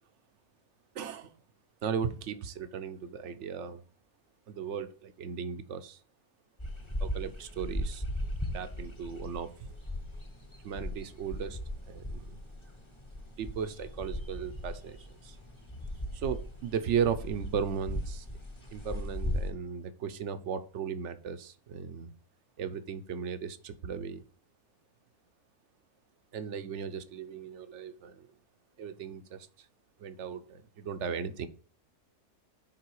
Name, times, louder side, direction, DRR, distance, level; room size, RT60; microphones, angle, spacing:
voice 1, 0.9-1.3 1.8-3.8 4.5-6.0 7.0-8.0 8.5-9.7 10.6-11.6 11.9-12.4 13.2-15.4 16.1-18.3 18.7-22.1 22.6-24.2 26.3-28.3 28.8-29.7 30.0-31.5, right 7 dB, 55° right, 1.0 m, -36 dB
sound 1, 6.6-19.5, left 1 dB, 20° left, 1.2 m, -38 dB
11.0 x 3.8 x 4.7 m
omnidirectional pair, 1.6 m